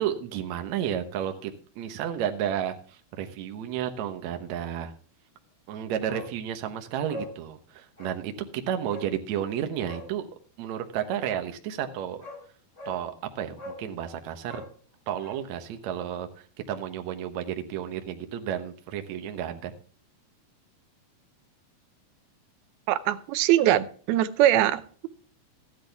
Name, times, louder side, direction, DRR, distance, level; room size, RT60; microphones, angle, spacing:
voice 1, 0.0-4.9 5.7-10.3 10.6-12.2 12.9-14.6 15.1-19.7, right 9 dB, 65° right, 6 dB, 2.0 m, -32 dB
Bark, 6.1-6.3 6.6-6.7 7.1-7.3 8.0-8.2 8.9-9.1 9.8-10.1 11.7-11.8 12.2-12.4 12.8-13.0 13.6-13.9 14.4-15.4 15.7-15.8, left 1 dB, 20° left, 4.2 m, -41 dB
voice 2, 22.9-25.1, right 13 dB, 85° right, 13 dB, 2.6 m, -22 dB
14.0 x 10.5 x 3.5 m, 0.43 s
omnidirectional pair, 4.3 m